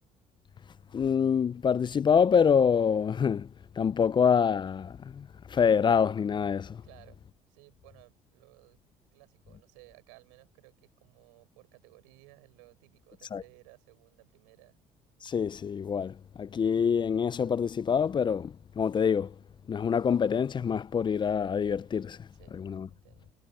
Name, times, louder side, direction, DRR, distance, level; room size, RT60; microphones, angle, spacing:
voice 1, 0.9-3.5 3.8-6.8 13.3-13.4 15.2-19.3 19.7-22.3 22.5-22.9, left 7 dB, 30° left, 0.5 m, -26 dB
voice 2, 6.8-7.2 7.5-8.8 9.1-14.8 22.3-22.6 22.8-23.3, right 32 dB, 90° right, 6.6 m, -58 dB
supercardioid pair, 75°, 15 cm